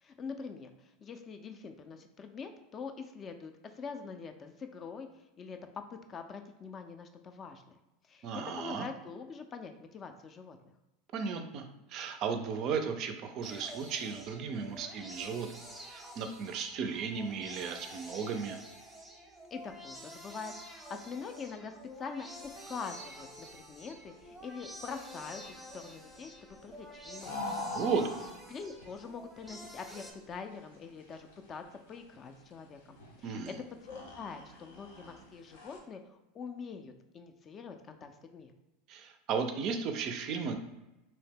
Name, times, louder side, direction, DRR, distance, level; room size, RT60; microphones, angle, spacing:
voice 1, 0.0-5.1 5.4-5.6 5.9-7.8 8.1-8.3 8.6-10.6 19.5-21.7 22.0-26.3 26.6-27.8 28.5-31.6 31.9-33.4 33.8-38.5, left 5 dB, 30° left, 7 dB, 0.3 m, -44 dB
voice 2, 8.2-8.9 11.1-18.6 27.7-28.1 33.2-33.6 38.9-40.6, right 5 dB, 50° right, 7 dB, 0.3 m, -35 dB
sound 1, 13.4-30.1, right 1 dB, 5° right, 0.7 m, -49 dB
sound 2, 22.4-35.8, left 2 dB, 90° left, 0.6 m, -46 dB
2.7 x 2.1 x 3.4 m, 0.98 s
hypercardioid pair, 105°, 0 cm